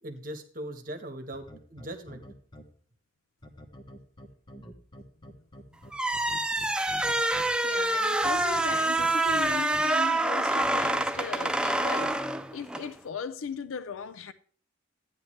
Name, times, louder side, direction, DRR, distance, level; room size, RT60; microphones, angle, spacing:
voice 1, 0.0-2.3, right 1 dB, 45° right, 1.3 m, -40 dB
sound 1, 1.3-2.6 3.4-7.4 8.2-9.8 10.6-10.9, equal, 25° left, 1.1 m, -47 dB
sound 2, 5.9-12.9, right 2 dB, 5° right, 0.4 m, -26 dB
voice 2, 7.3-14.3, left 6 dB, 90° left, 0.5 m, -38 dB
13.0 x 9.3 x 3.2 m
head